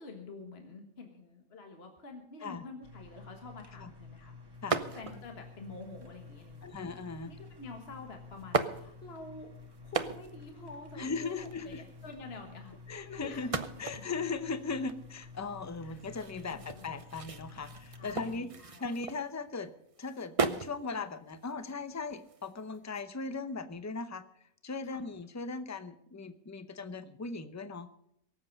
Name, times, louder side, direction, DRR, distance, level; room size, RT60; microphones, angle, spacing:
voice 1, 0.0-4.4 4.9-6.8 7.3-9.5 9.8-12.8 13.0-14.0 15.8-16.0 16.5-16.9 17.9-19.0 24.8-25.1, left 3 dB, 50° left, 3 dB, 1.7 m, -48 dB
sound 1, 2.8-18.4, left 4 dB, 15° right, 1.6 m, -51 dB
sound 2, 4.7-5.4 6.1-6.7 7.7-7.8 8.4-9.3 9.7-10.5 10.8-10.9 11.0-12.1 13.3-19.5 19.9-20.8 21.2-23.0, right 4 dB, 35° right, 0.6 m, -36 dB
voice 2, 6.6-7.3 10.9-11.8 12.9-13.5 13.8-18.5 18.8-19.7 20.0-24.2 24.6-27.9, left 4 dB, 15° left, 11 dB, 0.6 m, -38 dB
23.5 x 7.8 x 5.3 m, 0.75 s
omnidirectional pair, 1.4 m